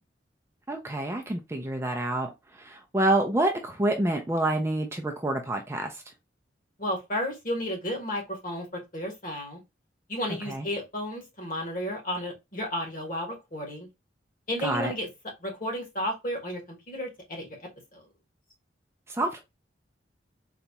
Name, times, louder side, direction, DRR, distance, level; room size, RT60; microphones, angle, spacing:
voice 1, 0.7-2.3 2.6-5.9 10.5-10.7 14.6-14.9 19.1-19.4, right 1 dB, 15° right, 0.4 m, -27 dB
voice 2, 6.8-9.6 10.1-13.9 14.5-15.1 15.4-16.6 16.9-18.0, equal, 45° left, 1.3 m, -33 dB
4.0 x 2.3 x 2.8 m
head